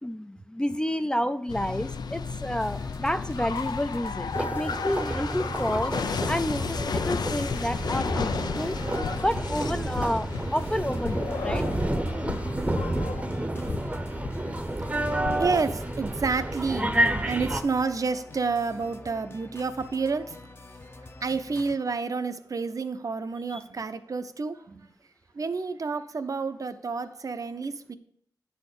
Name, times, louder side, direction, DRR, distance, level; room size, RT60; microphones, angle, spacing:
voice 1, 0.0-6.0 6.3-8.8 9.1-11.7 23.5-23.6, left 1 dB, 10° left, 10 dB, 0.4 m, -30 dB
sound 1, 1.5-15.7, left 5 dB, 75° left, 0.5 m, -34 dB
sound 2, 2.6-21.8, left 2 dB, 35° left, 0.8 m, -46 dB
sound 3, 4.3-17.6, right 1 dB, 20° right, 0.8 m, -30 dB
voice 2, 15.4-16.9 17.3-20.3 21.2-24.9 25.3-28.0, right 4 dB, 55° right, 11 dB, 0.7 m, -29 dB
10.0 x 4.2 x 6.7 m, 0.65 s
wide cardioid pair, 75°, 7 cm